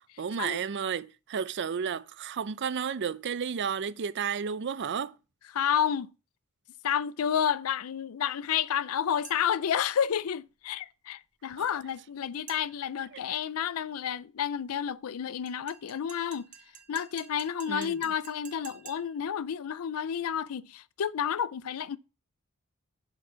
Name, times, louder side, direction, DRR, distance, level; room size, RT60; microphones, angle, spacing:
voice 1, 0.0-5.1 11.6-11.7 17.7-18.0, right 7 dB, 55° right, 0.5 m, -32 dB
voice 2, 5.5-6.1 6.8-16.5 16.9-22.0, left 8 dB, 75° left, 0.4 m, -30 dB
sound 1, 9.2-9.7 12.5-13.0 15.5-19.3, right 8 dB, 35° right, 1.1 m, -51 dB
7.4 x 5.1 x 5.6 m
head